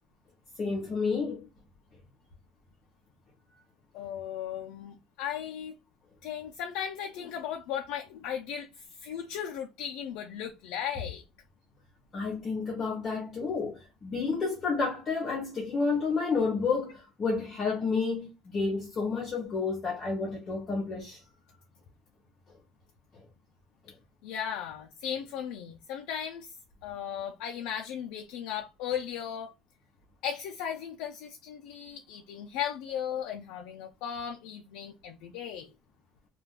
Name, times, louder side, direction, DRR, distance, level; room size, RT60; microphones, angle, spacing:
voice 1, 0.6-1.5 12.1-21.2 23.1-23.3, left 4 dB, 30° left, 0.7 m, -30 dB
voice 2, 3.9-5.7 6.2-8.7 9.0-11.2 24.2-26.5 26.8-29.5 30.2-35.7, left 9 dB, 90° left, 0.4 m, -36 dB
2.4 x 2.3 x 3.3 m
cardioid pair, 150°, 0 cm